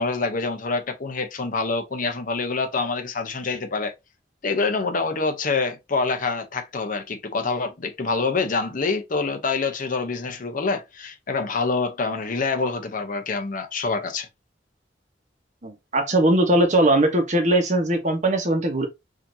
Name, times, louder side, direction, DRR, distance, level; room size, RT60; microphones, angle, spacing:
voice 1, 0.0-3.9 4.4-14.3, left 4 dB, 50° left, 0.8 m, -26 dB
voice 2, 15.6-18.9, right 1 dB, 40° right, 1.1 m, -20 dB
4.9 x 2.8 x 2.7 m
head